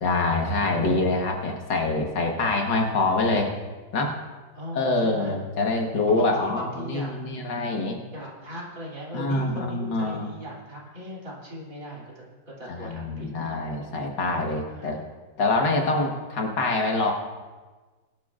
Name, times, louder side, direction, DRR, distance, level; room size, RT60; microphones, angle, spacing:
voice 1, 0.0-3.5 3.9-4.2 4.7-8.0 9.1-10.3 12.7-15.0 15.4-17.1, left 2 dB, 70° left, 1 dB, 2.1 m, -25 dB
voice 2, 4.5-5.4 6.1-7.2 8.1-13.5 14.7-15.0, equal, 45° right, -4 dB, 3.5 m, -38 dB
22.0 x 12.0 x 2.5 m, 1.3 s
omnidirectional pair, 2.0 m